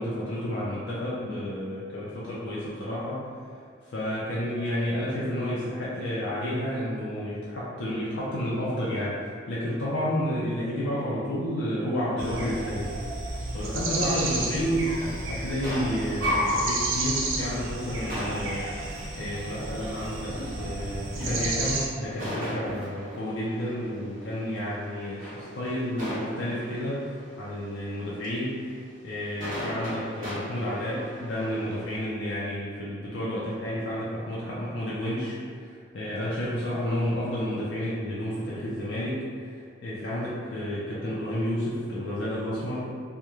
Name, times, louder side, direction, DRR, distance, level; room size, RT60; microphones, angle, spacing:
voice 1, 0.0-3.3 3.9-13.0 13.5-42.8, equal, 65° left, -8 dB, 0.4 m, -31 dB
sound 1, 12.2-21.9, right 1 dB, 85° right, 0.4 m, -31 dB
Walk footsteps, 14.0-14.3 15.0-15.2 16.1-16.4 17.0-17.4 18.2-18.6 19.5-20.0 20.4-20.7 21.2-21.7 22.6-23.1, equal, 5° right, 0.7 m, -40 dB
sound 2, 14.1-27.3 28.2-28.3 29.4-32.0, equal, 45° right, 0.7 m, -39 dB
2.3 x 2.1 x 2.9 m, 2.1 s
head